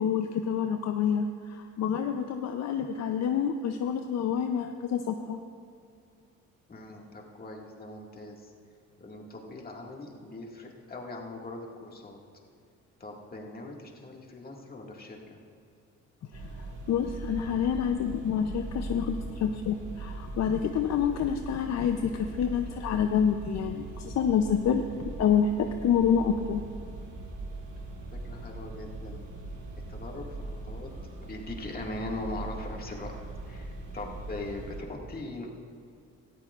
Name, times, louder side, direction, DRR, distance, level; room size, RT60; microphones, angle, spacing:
voice 1, 0.0-5.4 16.3-16.5 16.9-24.8 25.2-26.6, left 7 dB, 60° left, 6 dB, 0.6 m, -27 dB
voice 2, 6.7-8.5 9.0-12.2 13.0-15.4 28.2-29.3 29.9-30.9 31.2-33.1 33.5-35.5, left 2 dB, 30° left, -1 dB, 2.0 m, -40 dB
sound 1, 16.3-34.8, right 2 dB, 80° right, 2.9 m, -40 dB
18.0 x 13.5 x 2.5 m, 2.3 s
cardioid pair, 90°, 30 cm